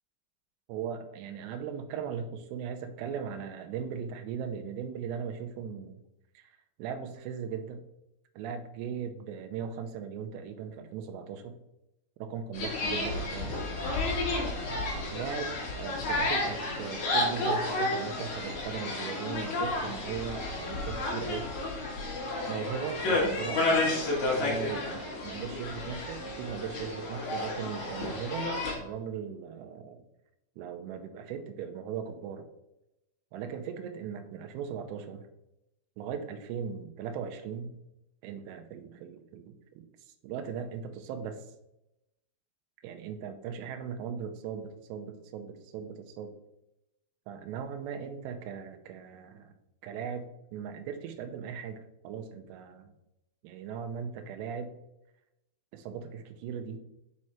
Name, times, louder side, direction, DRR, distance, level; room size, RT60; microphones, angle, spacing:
voice 1, 0.7-6.0 6.3-6.5 6.8-7.8 8.4-11.6 12.2-13.6 15.1-21.5 22.5-23.9 24.3-30.0 30.6-32.5 33.3-35.3 36.0-37.7 38.2-39.9 40.2-41.5 42.8-46.3 47.3-49.5 49.8-52.9 53.4-54.8 55.7-56.8, right 7 dB, 80° right, 6 dB, 2.6 m, -38 dB
sound 1, 12.5-28.8, left 2 dB, 60° left, 2.2 m, -31 dB
6.6 x 4.7 x 4.3 m, 0.89 s
omnidirectional pair, 5.3 m